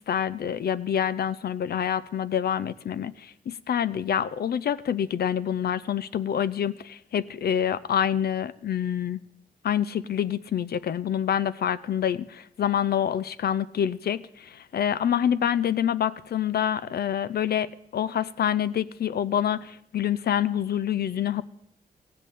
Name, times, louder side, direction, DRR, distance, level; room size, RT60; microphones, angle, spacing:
voice 1, 0.1-9.2 9.6-17.7 17.9-21.4, left 9 dB, 80° left, 16 dB, 0.5 m, -27 dB
15.5 x 5.3 x 8.4 m, 0.74 s
wide cardioid pair, 100°, 16 cm